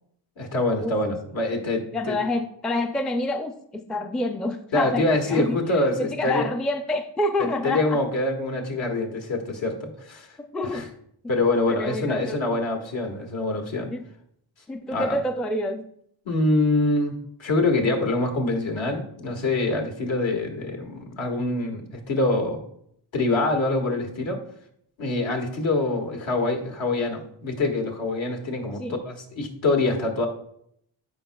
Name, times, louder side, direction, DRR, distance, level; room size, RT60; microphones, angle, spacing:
voice 1, 0.4-2.2 4.7-6.5 7.4-10.4 10.6-10.9 11.3-13.9 14.9-15.2 16.3-22.6 23.1-24.4 25.0-30.3, left 2 dB, 70° left, 1 dB, 1.8 m, -25 dB
voice 2, 1.9-8.0 10.4-10.9 11.7-12.5 13.9-14.0 14.7-15.8 28.8-29.0, left 1 dB, ahead, 6 dB, 0.3 m, -28 dB
14.0 x 5.1 x 2.3 m, 0.71 s
cardioid pair, 105°, 48 cm